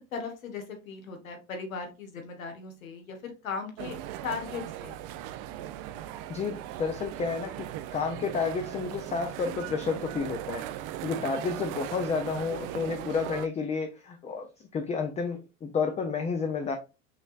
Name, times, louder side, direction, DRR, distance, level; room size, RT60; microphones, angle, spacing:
voice 1, 0.1-4.0 4.2-5.0, left 5 dB, 80° left, 5 dB, 1.3 m, -37 dB
sound 1, 3.8-13.5, right 12 dB, 45° right, 0.5 m, -38 dB
voice 2, 6.3-7.5 7.9-10.7 11.0-14.5 14.7-16.7, left 5 dB, 15° left, 5 dB, 0.5 m, -30 dB
5.6 x 3.1 x 2.4 m, 0.30 s
hypercardioid pair, 90°, 40 cm